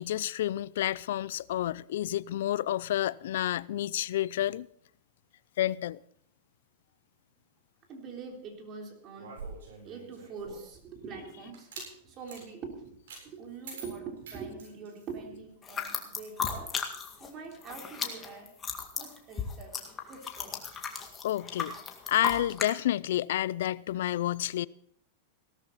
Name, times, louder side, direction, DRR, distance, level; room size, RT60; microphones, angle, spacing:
voice 1, 0.0-4.7 5.6-6.0 21.2-21.7 22.1-24.7, left 13 dB, 75° left, 0.4 m, -30 dB
voice 2, 7.9-9.3 9.8-12.9 13.2-16.7 17.2-18.5 19.0-19.8 20.1-20.9, right 5 dB, 35° right, 3.6 m, -44 dB
sound 1, 9.2-10.8 11.5-11.9 12.3-12.4 13.1-13.2 13.6-15.2, right 4 dB, 80° right, 7.7 m, -45 dB
sound 2, 15.6-17.3 17.5-22.7, left 6 dB, 20° left, 2.0 m, -35 dB
17.5 x 13.0 x 4.1 m
supercardioid pair, 140°, 0 cm